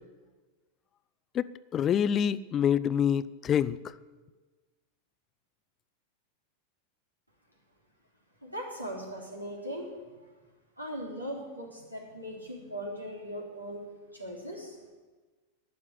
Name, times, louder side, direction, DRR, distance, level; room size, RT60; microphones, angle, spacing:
voice 1, 1.7-3.8, left 9 dB, 30° left, 18 dB, 0.5 m, -26 dB
voice 2, 8.4-9.9 10.8-13.8 14.1-14.8, equal, 90° right, -1 dB, 3.2 m, -39 dB
12.0 x 9.8 x 9.9 m, 1.3 s
figure-of-eight pair, 90°, 0 cm